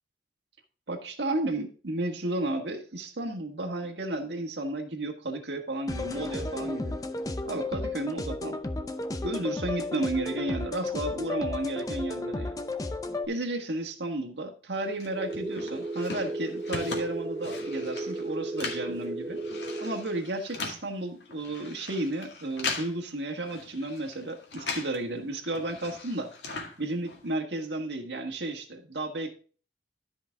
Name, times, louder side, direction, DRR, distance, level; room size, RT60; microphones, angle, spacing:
voice 1, 0.9-7.0 7.4-8.6 8.9-12.6 13.3-19.4 19.8-26.3 26.8-29.3, right 2 dB, 80° right, 4 dB, 1.6 m, -33 dB
sound 1, 5.9-13.3, left 2 dB, 20° left, 0.7 m, -33 dB
sound 2, 15.0-25.0 25.3-27.4, left 4 dB, 75° left, 2.1 m, -40 dB
sound 3, 15.1-20.1, right 2 dB, 25° right, 0.7 m, -35 dB
13.0 x 5.3 x 3.6 m, 0.39 s
head